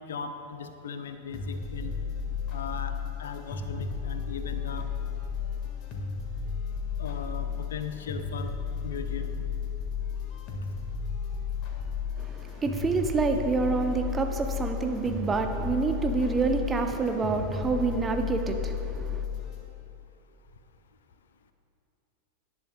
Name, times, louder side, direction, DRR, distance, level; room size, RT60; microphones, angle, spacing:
voice 1, 0.1-2.0 2.5-4.9 7.0-8.5 8.8-9.4, left 6 dB, 65° left, 8 dB, 0.6 m, -38 dB
sound 1, 1.3-19.6, left 6 dB, 40° left, 1.8 m, -33 dB
voice 2, 12.2-19.2, right 4 dB, 15° right, 5 dB, 0.9 m, -27 dB
18.0 x 10.5 x 2.3 m, 2.8 s
figure-of-eight pair, 90°, 0 cm